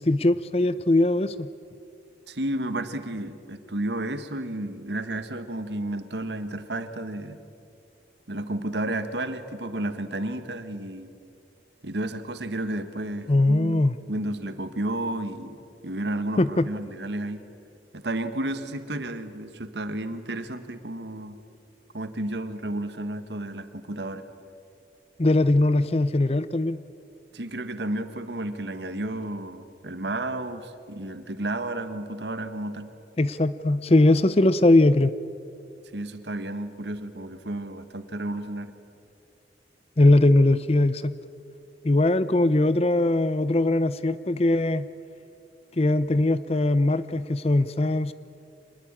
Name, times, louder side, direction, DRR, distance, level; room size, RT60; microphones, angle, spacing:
voice 1, 0.0-1.5 13.3-14.0 16.4-16.7 25.2-26.8 33.2-35.1 40.0-41.1 41.8-44.9 45.8-48.1, left 2 dB, 35° left, 15 dB, 0.6 m, -20 dB
voice 2, 2.3-7.4 8.3-11.1 11.8-13.8 14.1-15.6 15.8-17.4 17.9-21.4 21.9-24.2 27.3-32.9 35.9-38.7, right 1 dB, 80° right, 10 dB, 1.5 m, -32 dB
26.0 x 20.5 x 8.9 m, 2.5 s
head